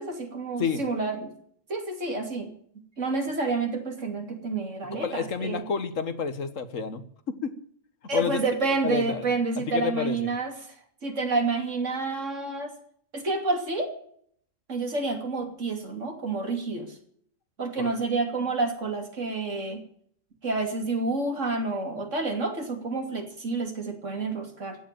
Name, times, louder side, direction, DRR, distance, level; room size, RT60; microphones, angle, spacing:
voice 1, 0.0-1.3 1.7-2.5 3.0-5.6 8.1-10.5 11.0-12.7 13.1-13.9 14.7-17.0 17.6-19.8 20.4-24.8, right 3 dB, 75° right, 4 dB, 3.1 m, -29 dB
voice 2, 5.0-7.0 7.3-7.5 8.1-8.4 8.8-10.3 17.8-18.0, left 5 dB, 85° left, 11 dB, 1.8 m, -30 dB
15.5 x 7.9 x 9.1 m, 0.62 s
omnidirectional pair, 1.3 m